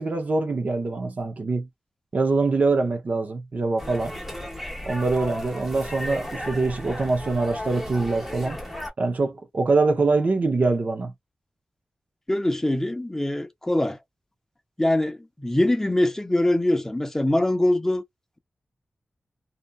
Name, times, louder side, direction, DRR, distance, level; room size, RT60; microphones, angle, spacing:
voice 1, 0.0-1.7 2.1-4.1 4.9-8.6 9.0-11.1, right 3 dB, 55° right, 0.6 m, -24 dB
sound 1, 3.8-8.9, left 1 dB, 5° right, 0.9 m, -35 dB
voice 2, 12.3-14.0 14.8-18.0, left 1 dB, 15° left, 0.6 m, -23 dB
2.7 x 2.3 x 2.2 m
wide cardioid pair, 85°, 3 cm